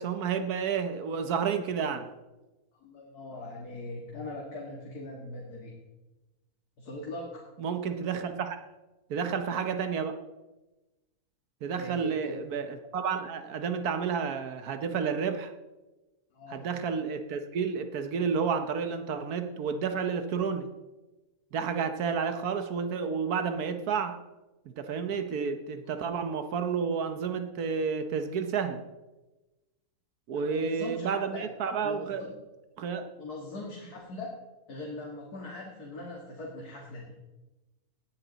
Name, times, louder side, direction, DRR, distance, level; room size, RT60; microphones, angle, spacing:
voice 1, 0.0-2.1 7.6-8.6 9.1-10.2 11.6-15.5 16.5-20.7 21.5-24.1 24.7-28.8 30.3-32.2 32.8-33.0, right 6 dB, 80° right, 8 dB, 1.4 m, -31 dB
voice 2, 2.8-5.7 6.8-7.4 11.7-12.4 16.3-16.7 25.9-26.0 30.3-31.5 31.8-32.4 33.2-34.3 34.7-37.2, left 1 dB, 90° left, -2 dB, 2.3 m, -41 dB
18.0 x 10.0 x 4.0 m, 1.1 s
omnidirectional pair, 1.6 m